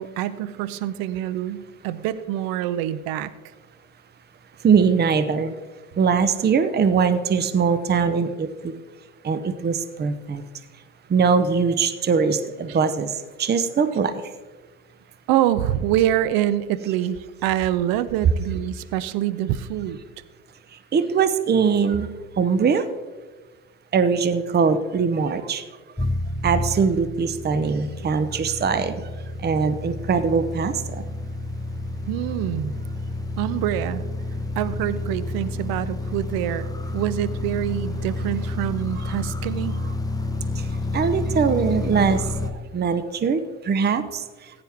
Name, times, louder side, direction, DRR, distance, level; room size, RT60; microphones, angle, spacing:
voice 1, 0.0-3.3 12.7-12.8 15.3-20.0 32.1-32.8 33.4-34.0 34.6-36.7 36.9-39.8, right 12 dB, 55° right, 15 dB, 0.8 m, -25 dB
voice 2, 4.6-5.5 6.0-8.7 9.2-10.4 11.1-13.1 13.4-14.1 20.9-22.1 22.4-22.8 23.9-25.6 26.4-29.0 29.4-31.0 40.9-44.2, right 6 dB, 25° right, 12 dB, 0.8 m, -21 dB
sound 1, 26.0-42.5, left 2 dB, 10° left, 0.9 m, -30 dB
15.0 x 9.8 x 3.5 m, 1.3 s
hypercardioid pair, 70°, 43 cm